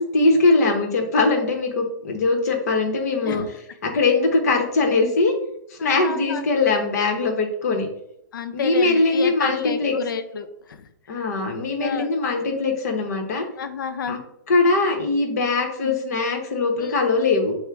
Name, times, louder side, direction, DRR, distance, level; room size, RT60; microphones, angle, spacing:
voice 1, 0.1-3.4 3.8-5.3 5.7-7.9 8.5-10.0 11.1-13.4 14.1-14.2 14.5-17.6, left 3 dB, 50° left, 3 dB, 0.9 m, -21 dB
voice 2, 5.8-6.4 8.3-10.9 11.8-12.1 13.6-14.2 15.8-16.0 16.8-16.9, left 6 dB, 75° left, 8 dB, 0.6 m, -30 dB
6.1 x 2.1 x 3.4 m, 0.78 s
hypercardioid pair, 175°, 11 cm